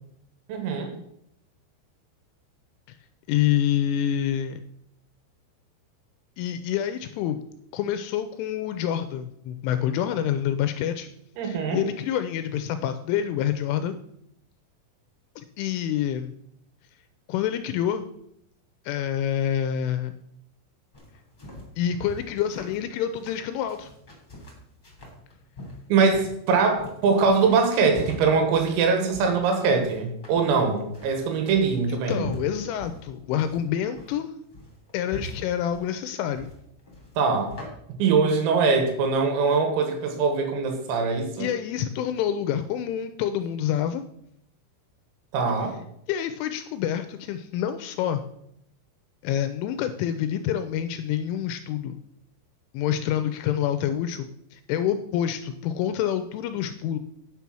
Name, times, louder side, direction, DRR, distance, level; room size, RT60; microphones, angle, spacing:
voice 1, 0.5-0.9 11.4-11.8 25.9-32.2 37.2-37.6 38.0-41.5 45.3-45.8, right 5 dB, 90° right, 5 dB, 4.3 m, -22 dB
voice 2, 3.3-4.6 6.4-7.4 7.7-11.1 11.4-14.0 15.4-16.3 17.3-18.1 18.9-20.1 21.8-23.9 31.9-34.3 34.9-36.5 41.4-44.0 46.1-48.2 49.2-52.0 52.7-57.0, left 10 dB, 85° left, 10 dB, 2.8 m, -27 dB
sound 1, 20.9-37.7, left 1 dB, 15° left, 1.6 m, -42 dB
9.0 x 7.0 x 6.1 m, 0.75 s
omnidirectional pair, 6.0 m